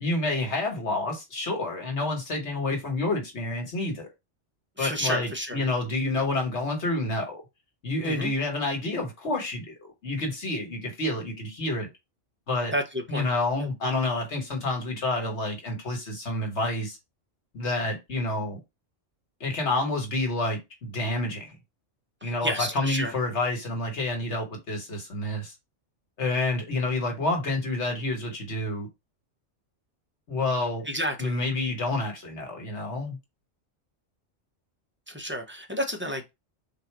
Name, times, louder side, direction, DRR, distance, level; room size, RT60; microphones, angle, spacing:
voice 1, 0.0-4.1 4.8-7.4 7.8-9.7 10.0-11.9 12.5-12.7 13.1-17.0 17.5-18.6 19.4-21.5 22.2-25.5 26.2-28.9 30.3-30.9 31.2-33.2, left 2 dB, 70° left, 1.5 m, -28 dB
voice 2, 4.8-5.6 8.0-8.3 12.7-13.3 13.6-13.7 22.2-23.1 30.9-31.4 35.1-36.3, equal, 10° right, 0.7 m, -31 dB
3.9 x 2.7 x 4.5 m
omnidirectional pair, 1.2 m